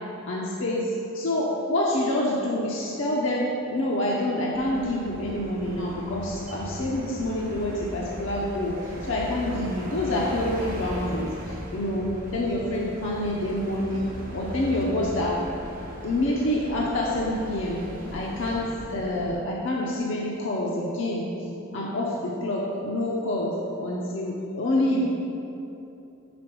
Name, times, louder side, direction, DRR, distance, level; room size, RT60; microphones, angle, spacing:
voice 1, 0.3-14.1 14.3-15.4 16.0-17.8 18.1-21.3 21.7-23.5 23.8-25.1, left 1 dB, 60° left, -3 dB, 0.6 m, -27 dB
sound 1, 4.5-19.4, equal, 40° right, 0.9 m, -38 dB
5.1 x 5.0 x 6.0 m, 2.9 s
head